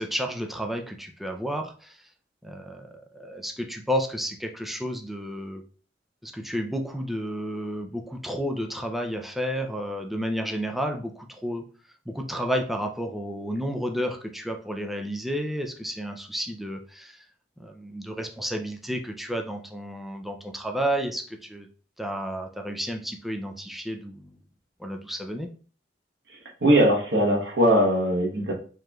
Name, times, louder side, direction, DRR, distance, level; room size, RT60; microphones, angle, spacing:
voice 1, 0.0-2.0 2.4-5.6 6.2-11.7 12.1-17.2 17.6-21.7 22.0-24.3 24.8-25.5, equal, ahead, 3 dB, 0.4 m, -31 dB
voice 2, 26.3-28.5, right 1 dB, 75° right, -1 dB, 1.1 m, -21 dB
4.8 x 3.0 x 2.3 m, 0.40 s
head